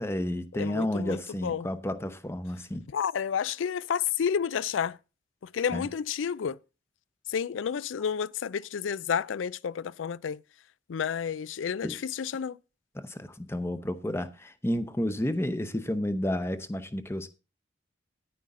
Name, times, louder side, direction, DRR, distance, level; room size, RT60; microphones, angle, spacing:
voice 1, 0.0-2.8 5.7-5.9 11.8-12.0 12.9-17.3, left 1 dB, 15° left, 0.8 m, -31 dB
voice 2, 0.5-1.7 2.9-5.0 5.5-6.6 7.3-10.4 10.9-12.6, left 7 dB, 85° left, 0.4 m, -30 dB
9.9 x 9.5 x 3.7 m
head